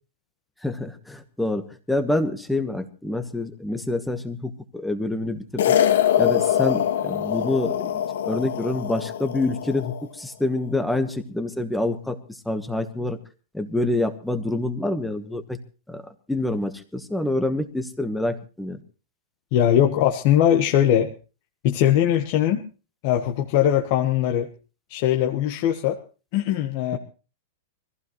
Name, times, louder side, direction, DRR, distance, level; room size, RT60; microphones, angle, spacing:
voice 1, 0.6-5.8 6.2-12.2 12.4-13.2 13.5-15.6 15.9-16.0 16.3-18.8 26.9-27.0, left 2 dB, ahead, 9 dB, 1.2 m, -27 dB
sound 1, 5.6-10.0, left 10 dB, 75° left, 1.6 m, -23 dB
voice 2, 19.5-21.1 21.6-22.6 23.0-24.5 24.9-26.0 26.3-27.0, left 10 dB, 35° left, 3 dB, 1.3 m, -20 dB
24.0 x 15.5 x 3.1 m, 0.35 s
supercardioid pair, 175°, 0 cm